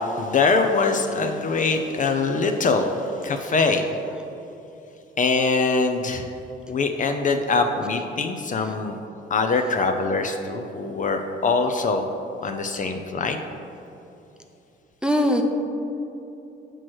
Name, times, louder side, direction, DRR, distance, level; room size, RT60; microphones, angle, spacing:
voice 1, 0.2-2.9 3.2-3.9 5.2-6.3 6.7-9.0 9.3-12.1 12.4-13.4, left 4 dB, 40° left, 6 dB, 0.5 m, -23 dB
voice 2, 15.0-15.4, equal, 5° right, 2 dB, 0.6 m, -21 dB
7.6 x 3.0 x 6.2 m, 2.9 s
cardioid pair, 90°, 20 cm